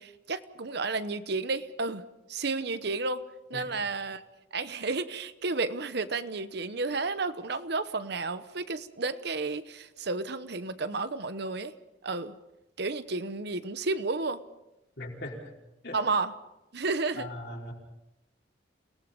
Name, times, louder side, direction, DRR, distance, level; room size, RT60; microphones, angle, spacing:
voice 1, 0.0-2.0 2.3-3.2 3.5-4.2 4.5-11.7 12.0-12.3 12.8-14.4 15.9-16.3 16.7-17.3, right 3 dB, 55° right, 12 dB, 1.0 m, -32 dB
voice 2, 15.0-15.6 15.8-16.0 17.2-17.7, left 1 dB, 55° left, -1 dB, 4.8 m, -39 dB
29.0 x 18.5 x 5.3 m, 0.94 s
head